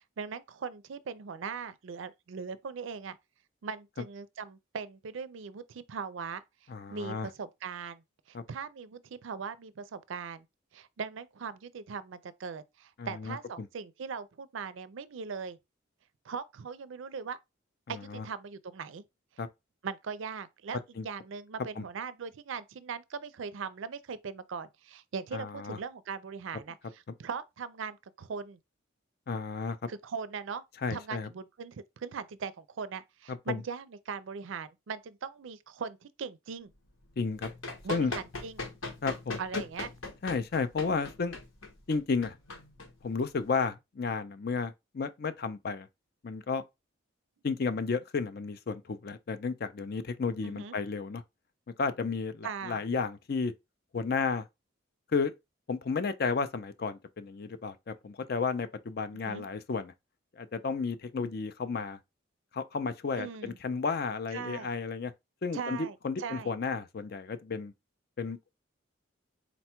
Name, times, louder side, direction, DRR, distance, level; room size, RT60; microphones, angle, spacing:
voice 1, 0.2-3.2 3.6-6.4 6.9-8.0 8.3-10.4 10.7-15.6 16.2-17.4 17.9-19.0 19.8-28.6 29.9-30.6 30.9-36.7 37.8-38.6 39.4-39.9 50.4-50.8 52.4-52.8 59.2-59.5 63.2-63.6 64.3-64.7 65.5-66.5, right 5 dB, 70° right, 0.4 m, -40 dB
voice 2, 6.7-7.3 8.3-8.4 13.0-13.7 17.9-18.2 19.4-19.5 21.0-21.1 21.8-21.9 25.3-25.8 29.3-29.8 30.8-31.3 33.3-33.6 37.2-37.5 37.9-38.1 39.0-39.4 40.2-41.4 41.9-42.4 43.0-45.9 46.2-46.6 47.4-51.2 51.8-53.5 53.9-54.5 55.1-55.3 55.7-59.9 60.4-62.0 62.5-65.1 65.4-65.8 66.0-67.7 68.2-68.5, left 4 dB, 50° left, 0.4 m, -32 dB
Run, 37.0-43.5, left 3 dB, 80° left, 1.1 m, -41 dB
4.1 x 2.2 x 4.3 m
head